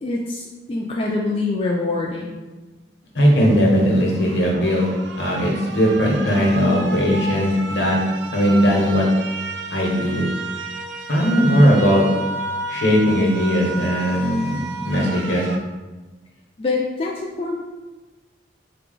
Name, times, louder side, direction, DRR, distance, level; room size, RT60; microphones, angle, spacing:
voice 1, 0.0-2.4 16.6-17.6, left 3 dB, 30° left, -2 dB, 0.3 m, -25 dB
voice 2, 3.1-4.9 5.2-8.0 8.3-9.1 9.7-10.3 11.1-12.0 12.7-14.6 14.8-15.5, equal, 70° left, -2 dB, 0.9 m, -18 dB
sound 1, 4.0-15.6, right 3 dB, 80° right, 0.3 m, -32 dB
3.9 x 2.3 x 3.8 m, 1.2 s
head